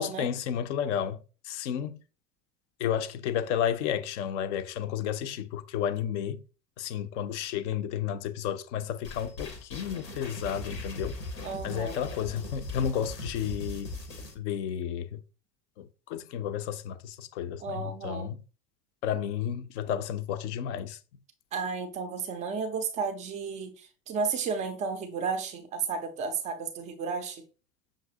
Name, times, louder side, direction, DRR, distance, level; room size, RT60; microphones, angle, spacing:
voice 1, 0.0-2.0 2.8-6.4 6.8-11.2 11.6-13.9 14.4-15.2 15.8-18.4 19.0-21.0, left 9 dB, 50° left, 0.4 m, -32 dB
sound 1, 9.0-14.3, left 2 dB, 85° left, 0.9 m, -39 dB
voice 2, 11.4-12.0 17.6-18.3 21.5-27.5, right 5 dB, 15° right, 0.3 m, -33 dB
5.8 x 2.5 x 2.7 m
figure-of-eight pair, 70°, 49 cm